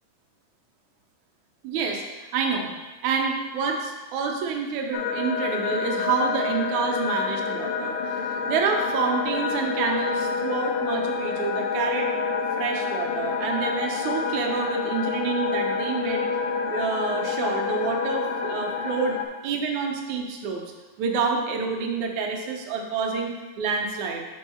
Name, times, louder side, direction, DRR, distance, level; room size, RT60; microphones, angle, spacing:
voice 1, 1.6-2.0 2.3-2.7 3.0-12.1 12.6-16.2 16.7-19.2 19.4-20.6 21.0-24.2, right 5 dB, 75° right, 1 dB, 1.9 m, -28 dB
sound 1, 4.9-19.3, left 5 dB, 85° left, 2.1 m, -28 dB
5.4 x 3.7 x 5.6 m, 1.2 s
omnidirectional pair, 3.7 m